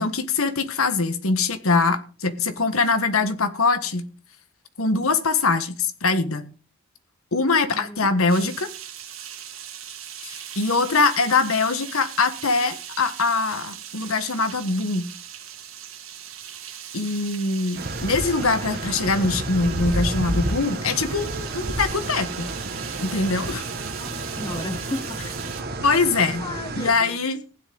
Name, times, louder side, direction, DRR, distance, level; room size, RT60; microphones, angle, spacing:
voice 1, 0.0-4.1 4.8-6.4 7.3-8.7 10.2-15.1 16.9-22.5 23.0-23.7 25.8-26.4 26.7-27.4, left 3 dB, 70° left, 1.5 m, -23 dB
voice 2, 7.7-8.1 24.0-25.3 26.4-27.2, left 1 dB, 20° left, 1.1 m, -34 dB
sound 1, 8.3-25.6, right 9 dB, 65° right, 2.3 m, -39 dB
sound 2, 17.7-26.9, right 2 dB, 45° right, 1.7 m, -30 dB
16.0 x 10.5 x 3.9 m
head